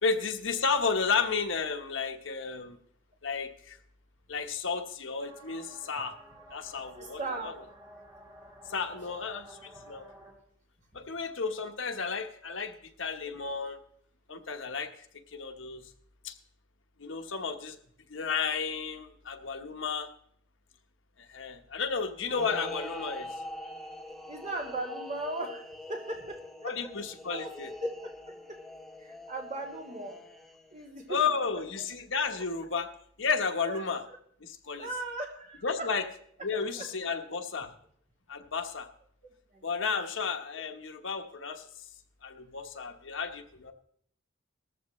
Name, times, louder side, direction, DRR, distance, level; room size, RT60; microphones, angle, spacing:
voice 1, 0.0-2.8 3.2-3.8 4.3-6.2 6.5-7.5 8.7-10.1 10.9-13.8 14.3-14.9 15.3-15.9 16.2-16.4 17.0-17.8 18.1-20.1 21.2-23.3 26.6-27.7 31.1-32.9 33.2-34.0 34.4-34.9 35.6-36.0 36.4-37.7 38.3-38.9 39.6-41.7 42.2-43.7, left 5 dB, 70° left, 6 dB, 1.2 m, -32 dB
sound 1, 5.2-10.3, right 1 dB, 20° right, 4.2 m, -52 dB
voice 2, 6.9-7.6 14.3-14.4 24.3-25.6 25.9-26.9 27.3-27.5 27.8-28.6 29.0-30.2 30.7-31.2 31.8-31.9 33.6-34.0 34.8-35.9 36.7-36.9 39.5-39.7, right 2 dB, 40° right, 0 dB, 2.8 m, -38 dB
sound 2, 22.3-30.8, left 1 dB, ahead, 1.0 m, -43 dB
18.5 x 14.0 x 3.2 m, 0.67 s
head